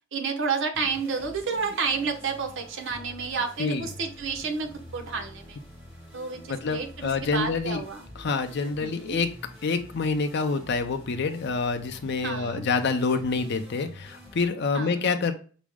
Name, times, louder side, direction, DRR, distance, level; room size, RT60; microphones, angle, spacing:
voice 1, 0.1-5.6 6.1-8.0 8.8-9.2 12.2-12.6 14.7-15.1, right 5 dB, 65° right, 4 dB, 0.8 m, -30 dB
sound 1, 0.7-14.5, left 1 dB, 10° right, 1.2 m, -47 dB
voice 2, 6.5-7.8 8.2-9.3 9.6-15.3, left 4 dB, 55° left, 7 dB, 0.5 m, -27 dB
5.9 x 2.1 x 3.5 m, 0.39 s
head